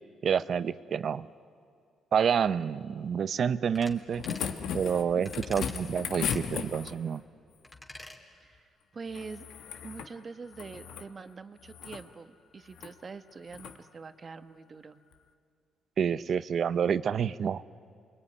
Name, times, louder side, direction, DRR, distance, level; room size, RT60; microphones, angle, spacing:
voice 1, 0.2-1.3 2.1-4.2 4.7-7.2 16.0-17.6, right 7 dB, 55° right, 16 dB, 0.7 m, -28 dB
sound 1, 3.7-4.0 4.2-4.5 5.3-5.8 6.2-6.4 7.6-8.2 8.5-8.6, left 1 dB, 20° left, 3.1 m, -45 dB
sound 2, 3.9-7.2 9.1-10.1 10.5-11.1 11.6-12.0 12.7-12.9 13.5-13.8 15.1-15.2, left 7 dB, 85° left, 1.5 m, -36 dB
voice 2, 8.4-9.5 9.8-15.0, right 4 dB, 40° right, 10 dB, 1.2 m, -44 dB
27.5 x 22.5 x 9.7 m, 2.2 s
cardioid pair, 90°, 0 cm